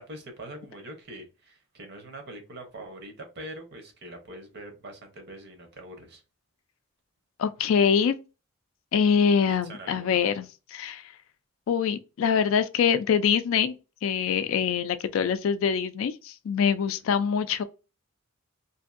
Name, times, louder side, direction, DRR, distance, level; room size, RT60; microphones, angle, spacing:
voice 1, 0.0-6.2 9.5-10.2 16.8-17.1, right 1 dB, 50° right, 0.8 m, -43 dB
voice 2, 7.4-8.2 8.9-11.0 11.7-13.7 14.0-17.6, left 7 dB, 65° left, 0.3 m, -24 dB
2.7 x 2.5 x 2.4 m
head